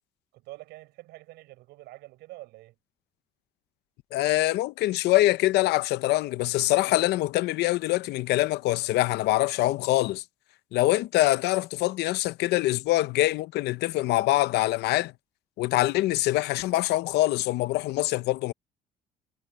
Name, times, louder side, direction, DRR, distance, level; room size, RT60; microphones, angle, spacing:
voice 1, 0.3-2.8, right 19 dB, 90° right, 7.0 m, -46 dB
voice 2, 4.1-10.2 10.7-15.1 15.6-18.5, left 17 dB, 80° left, 0.7 m, -24 dB
cardioid pair, 110°, 17 cm